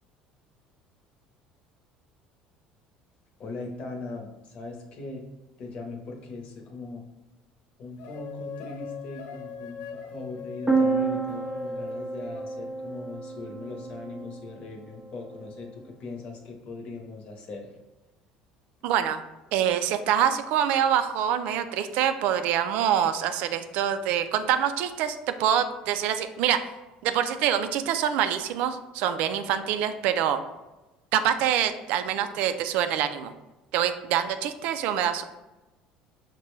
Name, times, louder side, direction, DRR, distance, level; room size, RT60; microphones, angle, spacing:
voice 1, 3.4-5.3 5.6-7.0 7.8-17.7, left 3 dB, 45° left, 2 dB, 0.9 m, -40 dB
sound 1, 8.0-12.5, left 7 dB, 75° left, 0.3 m, -41 dB
sound 2, 10.7-14.4, right 4 dB, 10° right, 0.5 m, -29 dB
voice 2, 18.8-19.2 19.5-26.6 27.0-30.4 31.1-33.3 33.7-35.2, right 9 dB, 70° right, 10 dB, 0.3 m, -25 dB
5.9 x 2.2 x 3.1 m, 1.1 s
cardioid pair, 120°, 3 cm